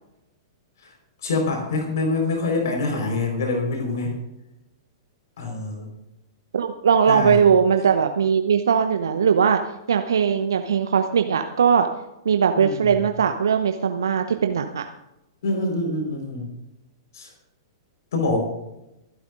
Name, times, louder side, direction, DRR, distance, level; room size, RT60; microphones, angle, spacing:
voice 1, 1.2-4.1 5.4-5.9 7.1-7.4 12.5-13.0 15.4-16.4 17.1-17.3 18.1-18.4, left 3 dB, 60° left, 2 dB, 4.5 m, -25 dB
voice 2, 6.5-9.6 9.9-11.9 12.2-14.8, right 7 dB, 65° right, 7 dB, 0.9 m, -20 dB
25.5 x 11.5 x 2.6 m, 0.90 s
figure-of-eight pair, 100°, 2 cm